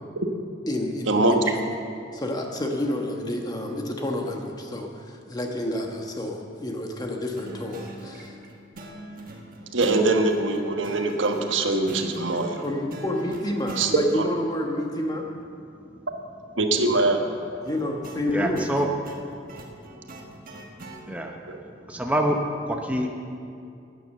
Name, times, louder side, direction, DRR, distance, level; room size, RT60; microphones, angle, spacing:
voice 1, 0.7-1.6 2.1-8.3 12.6-15.3 17.6-18.7, left 1 dB, 20° left, 2 dB, 1.2 m, -29 dB
sound 1, 7.3-13.9 17.7-21.0, right 1 dB, 45° right, 1.4 m, -40 dB
voice 2, 9.7-12.6 13.8-14.3 16.6-17.2 21.1-21.2 21.5-21.6, right 2 dB, 75° right, 4 dB, 1.2 m, -23 dB
voice 3, 18.3-19.3 21.1-21.4 21.9-22.4 22.6-23.1, right 1 dB, 5° right, 1 dB, 0.9 m, -26 dB
12.0 x 9.3 x 7.6 m, 2.5 s
head